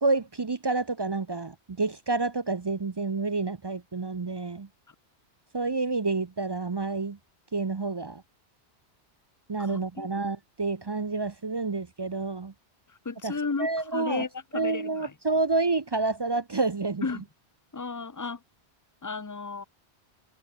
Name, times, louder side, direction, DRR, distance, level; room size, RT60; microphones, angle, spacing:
voice 1, 0.0-4.7 5.5-7.2 7.5-8.2 9.5-12.5 13.2-13.3 13.6-14.2 14.5-17.1, right 3 dB, 30° right, 0.5 m, -29 dB
voice 2, 9.6-10.1 13.0-15.1 17.0-17.2 17.7-18.4 19.0-19.6, left 4 dB, 20° left, 0.6 m, -33 dB
omnidirectional pair, 1.1 m